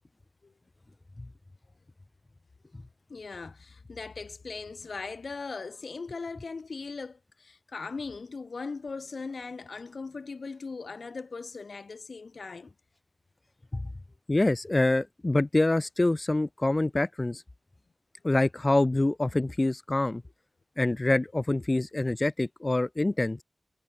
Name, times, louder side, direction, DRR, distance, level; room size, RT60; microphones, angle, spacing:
voice 1, 3.1-12.7, left 4 dB, 70° left, 3.5 m, -39 dB
voice 2, 14.3-17.4 18.2-20.2 20.8-23.4, left 2 dB, 30° left, 0.8 m, -26 dB
wide cardioid pair, 80°, 0 cm